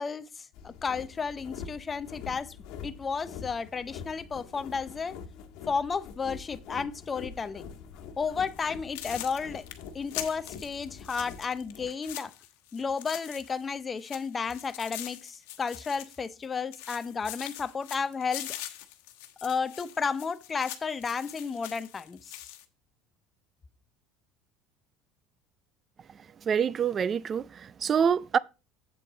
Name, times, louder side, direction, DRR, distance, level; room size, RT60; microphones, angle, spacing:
voice 1, 0.0-2.6 2.8-5.2 5.7-7.6 8.2-9.7 9.9-12.3 12.7-18.5 19.4-22.4, left 5 dB, 20° left, 0.6 m, -32 dB
sound 1, 0.5-11.9, left 6 dB, 70° left, 1.4 m, -45 dB
sound 2, 8.5-8.6 8.9-13.7 14.0-16.5 16.7-22.6, left 14 dB, 85° left, 1.1 m, -43 dB
voice 2, 26.5-28.4, right 7 dB, 30° right, 0.3 m, -26 dB
7.8 x 7.6 x 3.8 m
cardioid pair, 130°, 0 cm